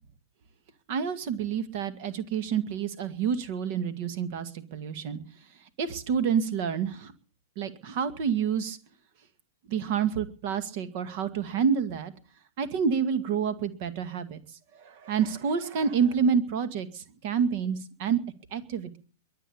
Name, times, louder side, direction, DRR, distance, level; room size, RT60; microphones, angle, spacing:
voice 1, 0.9-5.2 5.8-7.1 7.6-8.8 9.7-12.1 12.6-14.4 14.8-18.2 18.5-19.0, right 7 dB, 45° right, 13 dB, 1.9 m, -28 dB
22.5 x 8.4 x 7.1 m, 0.42 s
figure-of-eight pair, 105°, 0 cm